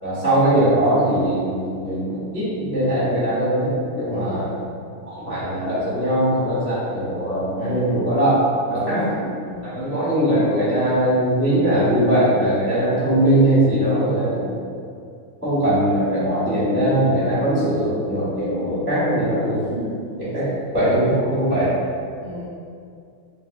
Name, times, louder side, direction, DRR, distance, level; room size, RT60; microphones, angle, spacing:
voice 1, 0.0-4.5 5.1-8.4 8.7-9.1 9.6-14.6 15.4-19.7 20.2-20.5 20.7-21.8, right 1 dB, 5° right, -13 dB, 1.0 m, -20 dB
voice 2, 4.1-4.8 7.6-8.1 8.8-9.8 19.7-20.0 20.4-20.5 22.2-22.5, left 1 dB, 65° right, -10 dB, 1.2 m, -33 dB
3.3 x 2.7 x 2.6 m, 2.4 s
omnidirectional pair, 2.4 m